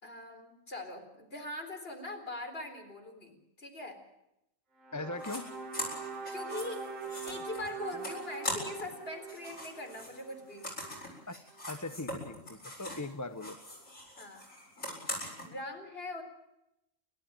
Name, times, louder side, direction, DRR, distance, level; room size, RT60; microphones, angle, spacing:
voice 1, 0.0-4.0 6.3-6.9 7.2-10.6 14.2-14.4 15.4-16.2, left 2 dB, 45° left, 4 dB, 4.4 m, -42 dB
sound 1, 4.8-11.0, right 6 dB, 75° right, 2.8 m, -43 dB
voice 2, 4.9-5.5 11.3-11.4 11.7-13.6, left 2 dB, 15° left, 10 dB, 0.8 m, -40 dB
sound 2, 5.2-5.4 5.7-9.0 9.2-13.1 13.4-15.5, left 1 dB, 70° left, 8.1 m, -41 dB
29.0 x 13.0 x 9.0 m, 0.85 s
omnidirectional pair, 1.4 m